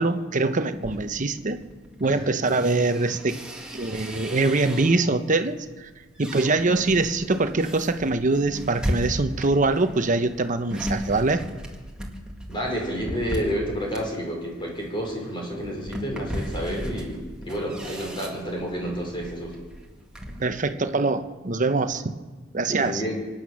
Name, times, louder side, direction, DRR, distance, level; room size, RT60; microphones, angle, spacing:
voice 1, 0.0-1.6 2.0-3.4 3.7-5.9 6.2-11.4 20.4-22.1 22.5-23.0, right 3 dB, 40° right, 9 dB, 0.9 m, -23 dB
sound 1, 0.7-5.2 5.7-20.4, equal, 5° right, 1.9 m, -36 dB
voice 2, 12.5-19.6 22.7-23.1, equal, 25° left, -1 dB, 4.6 m, -30 dB
25.0 x 9.0 x 6.3 m, 1.3 s
head